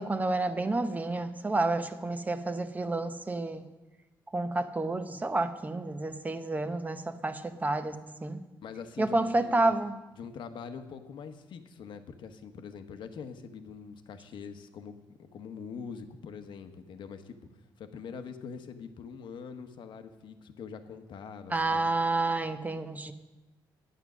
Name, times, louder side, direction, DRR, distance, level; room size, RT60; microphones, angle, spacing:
voice 1, 0.0-3.6 4.3-8.0 8.2-8.4 9.0-10.0 21.5-23.1, right 2 dB, 20° right, 10 dB, 0.8 m, -29 dB
voice 2, 8.6-9.7 10.2-17.4 17.8-21.8, left 6 dB, 70° left, 8 dB, 1.0 m, -43 dB
9.3 x 9.1 x 6.2 m, 1.1 s
cardioid pair, 95°, 8 cm